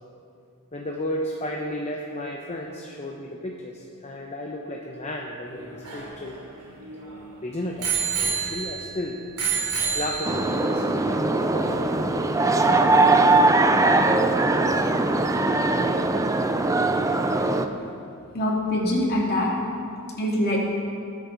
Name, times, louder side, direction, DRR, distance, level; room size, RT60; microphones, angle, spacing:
voice 1, 0.7-6.4 7.4-7.9 8.2-9.2 9.9-12.1, left 1 dB, 30° left, 0 dB, 0.8 m, -33 dB
Bicycle bell, 5.5-7.2 7.8-9.0 9.4-10.6 11.4-11.5, right 6 dB, 75° right, 3.1 m, -28 dB
sound 1, 10.2-17.7, right 2 dB, 15° right, 0.4 m, -21 dB
voice 2, 18.3-19.5 20.2-20.6, left 1 dB, 45° left, -2 dB, 2.2 m, -23 dB
19.0 x 8.3 x 3.9 m, 2.6 s
head